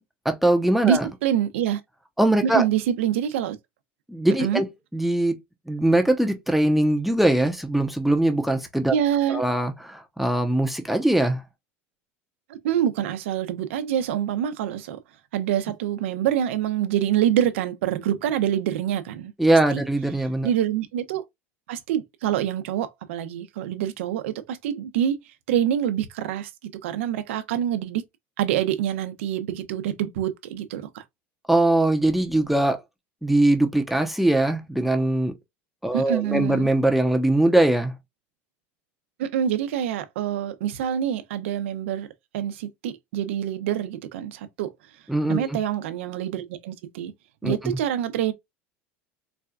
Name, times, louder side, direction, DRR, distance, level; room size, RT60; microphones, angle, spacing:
voice 1, 0.2-1.1 2.2-2.7 4.1-4.7 4.9-5.4 5.7-8.9 9.3-11.4 19.4-20.5 31.5-32.8 33.2-35.3 35.8-37.9 45.1-45.6 47.4-47.6, right 1 dB, ahead, 0.7 m, -21 dB
voice 2, 0.8-1.8 2.4-3.6 4.4-4.6 8.9-9.4 12.5-15.0 15.3-19.3 19.7-19.8 20.4-21.2 21.7-25.2 25.5-26.5 26.8-28.0 28.4-31.0 35.9-36.7 39.2-42.1 42.3-44.7 45.3-47.1 47.4-48.3, right 10 dB, 85° right, 0.7 m, -26 dB
4.2 x 2.3 x 2.3 m
supercardioid pair, 120°, 7 cm